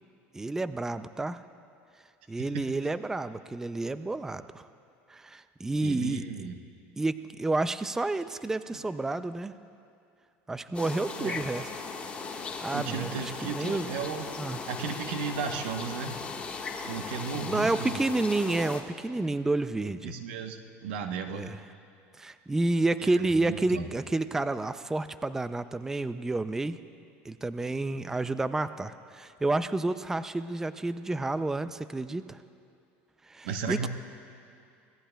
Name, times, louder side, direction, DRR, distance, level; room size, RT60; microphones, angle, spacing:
voice 1, 0.3-1.4 2.3-4.7 5.1-6.2 7.0-9.5 10.5-11.6 12.5-13.1 13.4-13.9 14.4-14.6 16.8-16.9 17.3-20.1 21.3-21.6 22.2-26.8 27.2-32.4 33.3-33.9, right 2 dB, 10° right, 12 dB, 0.3 m, -30 dB
voice 2, 5.8-6.6 11.2-11.4 12.7-14.4 14.7-16.2 16.8-18.0 20.0-21.6 23.4-23.9 33.4-33.9, right 6 dB, 85° right, 6 dB, 1.0 m, -35 dB
sound 1, 10.7-18.8, left 4 dB, 20° left, 1.4 m, -38 dB
25.0 x 18.0 x 2.3 m, 2.5 s
supercardioid pair, 120°, 6 cm